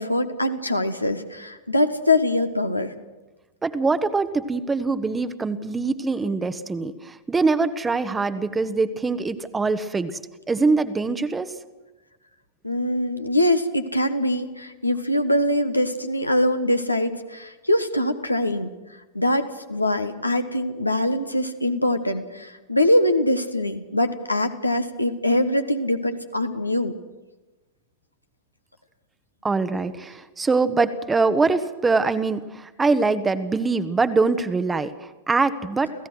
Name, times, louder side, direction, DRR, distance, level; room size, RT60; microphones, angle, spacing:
voice 1, 0.0-2.9 12.6-18.7 19.1-26.9, left 1 dB, 85° left, 7 dB, 1.3 m, -23 dB
voice 2, 3.6-10.2 10.5-11.5 29.4-35.9, right 3 dB, 15° right, 11 dB, 1.1 m, -23 dB
29.5 x 16.0 x 6.3 m, 1.2 s
figure-of-eight pair, 90°, 0 cm